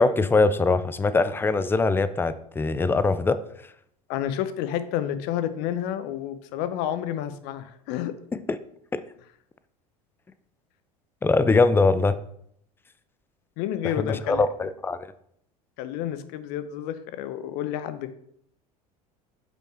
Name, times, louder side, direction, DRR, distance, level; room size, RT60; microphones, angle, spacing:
voice 1, 0.0-3.4 8.3-8.6 8.9-9.0 11.2-12.2 14.0-15.0, left 3 dB, 10° left, 14 dB, 0.4 m, -22 dB
voice 2, 4.1-8.1 13.6-14.5 15.8-18.1, left 10 dB, 55° left, 11 dB, 0.7 m, -30 dB
5.4 x 4.5 x 4.4 m, 0.68 s
hypercardioid pair, 75°, 19 cm